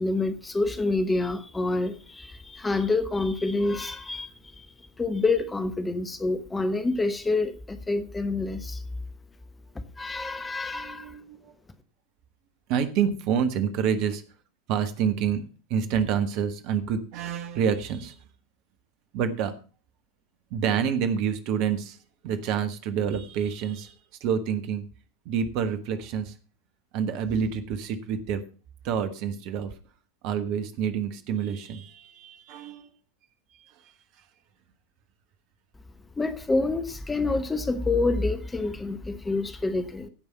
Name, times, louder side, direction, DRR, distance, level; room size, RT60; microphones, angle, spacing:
voice 1, 0.0-4.7 5.0-8.8 10.0-11.2 36.2-40.1, left 3 dB, 10° left, 1.1 m, -27 dB
voice 2, 10.7-11.5 12.7-14.2 14.7-15.4 15.7-18.2 19.1-19.5 20.5-22.0 22.2-23.9 24.2-24.8 25.2-26.3 26.9-28.4 28.8-29.7 30.2-32.9, right 7 dB, 45° right, 1.3 m, -27 dB
16.0 x 5.4 x 5.4 m
figure-of-eight pair, 85°, 0 cm